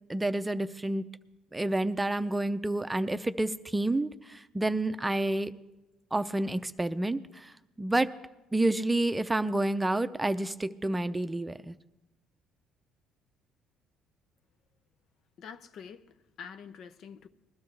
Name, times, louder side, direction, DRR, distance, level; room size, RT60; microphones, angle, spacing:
voice 1, 0.1-1.1 1.5-5.5 6.1-7.5 7.8-8.1 8.5-11.7, right 2 dB, 15° right, 0.6 m, -29 dB
voice 2, 15.4-17.3, left 7 dB, 65° left, 0.7 m, -46 dB
20.5 x 12.5 x 3.3 m
supercardioid pair, 75°, 0 cm